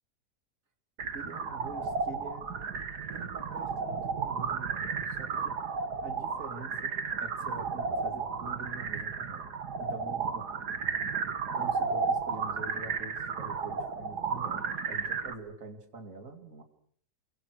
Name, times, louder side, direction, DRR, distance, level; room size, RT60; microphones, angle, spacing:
sound 1, 1.0-15.3, right 5 dB, 90° right, 2.3 m, -33 dB
voice 1, 1.1-2.5 3.1-5.6 6.0-6.9 7.2-9.5 9.8-10.5 11.5-16.6, right 3 dB, 55° right, 5 dB, 3.1 m, -45 dB
29.0 x 24.0 x 6.4 m, 0.64 s
omnidirectional pair, 1.7 m